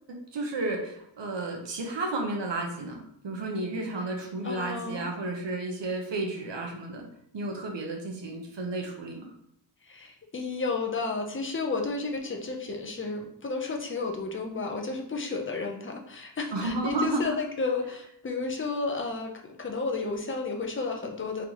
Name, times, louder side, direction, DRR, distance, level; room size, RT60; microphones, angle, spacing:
voice 1, 0.1-7.1 7.3-9.3 16.5-17.4, right 2 dB, 70° right, 1 dB, 1.0 m, -32 dB
voice 2, 4.4-5.0 9.8-21.4, left 3 dB, 25° left, 2 dB, 0.7 m, -32 dB
4.0 x 3.5 x 3.0 m, 0.75 s
wide cardioid pair, 110°, 45 cm